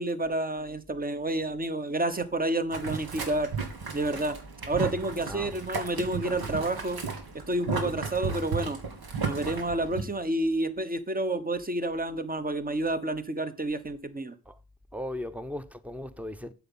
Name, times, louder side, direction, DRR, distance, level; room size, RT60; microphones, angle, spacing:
voice 1, 0.0-3.5 3.9-4.4 4.7-7.0 7.3-8.8 9.2-14.3, right 2 dB, 25° right, 1.2 m, -29 dB
Boiling, 2.7-10.0, right 4 dB, 75° right, 2.1 m, -34 dB
voice 2, 5.3-5.6 14.5-14.6 14.9-16.5, left 1 dB, 5° right, 0.9 m, -37 dB
8.0 x 6.1 x 5.5 m
cardioid pair, 55°, 38 cm